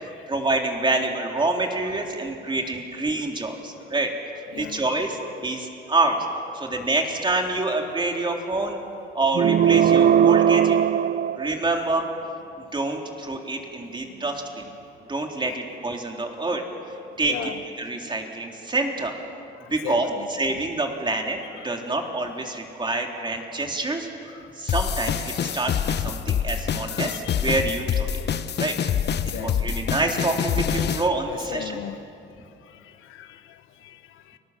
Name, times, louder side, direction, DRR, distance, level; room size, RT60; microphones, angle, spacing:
voice 1, 0.0-4.1 4.5-6.2 6.5-8.8 9.1-10.8 11.4-12.1 12.7-14.7 15.1-16.6 17.2-17.5 17.8-19.1 19.7-20.1 20.4-24.1 24.6-28.2 28.6-28.7 29.4-31.8, right 2 dB, 25° right, 2 dB, 3.7 m, -27 dB
voice 2, 4.5-4.8 6.7-6.8 7.6-7.7 10.9-11.0 15.4-15.8 17.2-17.6 19.3-20.3 21.4-21.7 23.3-23.4 24.3-24.4 25.4-25.7 26.8-27.5 29.2-29.8 30.8-30.9 31.3-32.0 32.6-34.4, left 11 dB, 90° left, 10 dB, 1.2 m, -39 dB
sound 1, 9.3-12.0, right 9 dB, 50° right, 0.5 m, -19 dB
sound 2, 24.7-31.1, left 8 dB, 60° left, 1.0 m, -26 dB
30.0 x 20.0 x 7.6 m, 2.6 s
cardioid pair, 90°, 20 cm